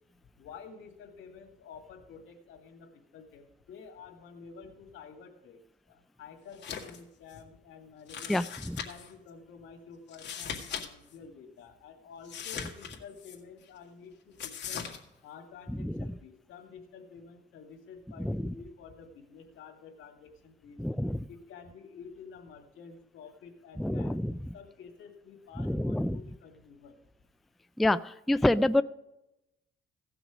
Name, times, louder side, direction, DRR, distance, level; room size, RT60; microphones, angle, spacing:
voice 1, 0.4-5.6 5.9-8.4 8.8-14.9 15.2-20.9 21.3-27.0, left 5 dB, 85° left, 3 dB, 2.2 m, -50 dB
sound 1, 6.5-7.0 7.3-7.4 8.1-9.1 10.1-10.9 11.1-11.2 12.2-13.4 14.4-15.0, left 7 dB, 60° left, 2.1 m, -39 dB
voice 2, 8.3-8.8 15.8-16.0 18.2-18.4 20.8-21.2 23.8-24.3 25.6-26.2 27.8-28.8, left 1 dB, ahead, 14 dB, 0.3 m, -27 dB
17.0 x 6.1 x 5.0 m, 0.90 s
cardioid pair, 90°, 20 cm